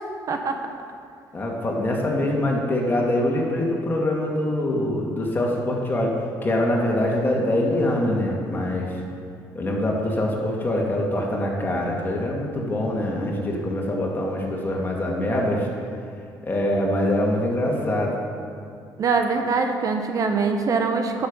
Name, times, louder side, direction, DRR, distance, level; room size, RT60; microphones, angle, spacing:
voice 1, 1.3-9.0 9.5-15.7 16.4-18.2, left 1 dB, 25° left, -2 dB, 2.3 m, -24 dB
voice 2, 19.0-21.3, right 4 dB, 50° right, 5 dB, 0.9 m, -23 dB
11.0 x 7.1 x 5.5 m, 2.3 s
cardioid pair, 100°, 8 cm